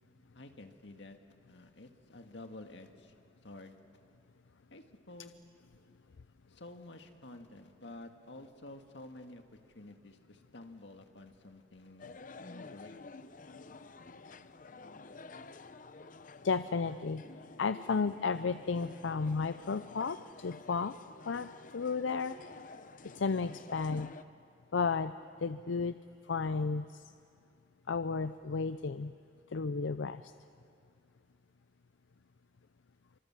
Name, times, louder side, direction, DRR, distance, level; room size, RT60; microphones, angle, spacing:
voice 1, 0.3-1.2 1.5-3.1 3.4-3.8 4.7-5.3 6.5-12.2 12.6-13.0, left 2 dB, 70° left, 5 dB, 1.9 m, -51 dB
sound 1, 12.0-24.2, left 3 dB, 45° left, 0.7 m, -51 dB
voice 2, 16.4-17.2 17.6-20.9 21.2-22.4 23.1-24.1 24.7-25.1 25.4-26.0 26.3-27.0 27.9-29.1 29.5-30.3, left 4 dB, 90° left, 12 dB, 0.5 m, -33 dB
29.0 x 25.0 x 7.5 m, 2.5 s
head